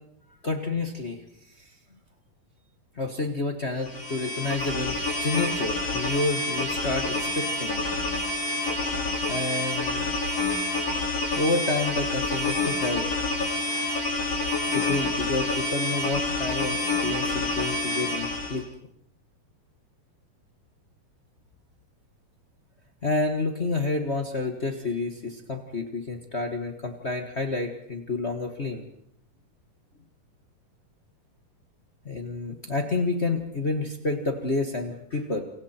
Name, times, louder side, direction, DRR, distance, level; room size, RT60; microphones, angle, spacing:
voice 1, 0.4-1.2 2.9-7.8 9.3-10.2 11.3-13.1 14.7-18.7 23.0-28.8 32.0-35.4, left 3 dB, 55° left, 4 dB, 0.7 m, -29 dB
sound 1, 3.8-18.6, left 2 dB, 90° left, 10.0 m, -28 dB
28.5 x 25.0 x 4.4 m, 0.70 s
omnidirectional pair, 3.9 m